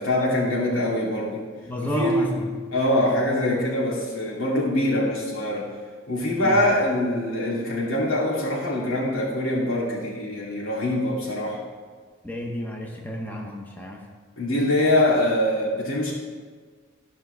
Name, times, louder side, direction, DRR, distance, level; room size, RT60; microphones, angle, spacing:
voice 1, 0.0-1.4 1.9-2.3 2.7-5.7 6.1-11.6 14.4-16.1, left 1 dB, 85° left, -6 dB, 2.6 m, -23 dB
voice 2, 1.7-2.5 6.4-6.6 12.2-14.1, equal, 10° left, 0 dB, 0.7 m, -30 dB
13.5 x 5.7 x 3.3 m, 1.5 s
head